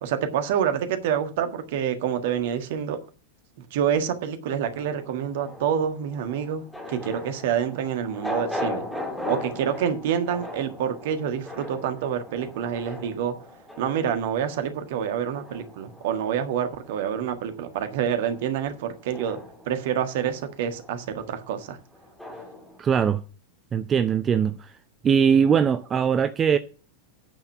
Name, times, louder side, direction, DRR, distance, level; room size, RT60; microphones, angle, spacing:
voice 1, 0.0-3.0 3.7-6.6 6.9-8.8 9.3-13.3 13.8-19.4 19.7-21.8, right 8 dB, 55° right, 1.6 m, -27 dB
sound 1, 4.6-17.2 17.5-22.8, left 1 dB, ahead, 2.3 m, -39 dB
voice 2, 22.8-23.2 23.7-24.7 25.0-26.6, right 7 dB, 25° right, 0.6 m, -21 dB
9.2 x 5.8 x 7.1 m
figure-of-eight pair, 90°, 0 cm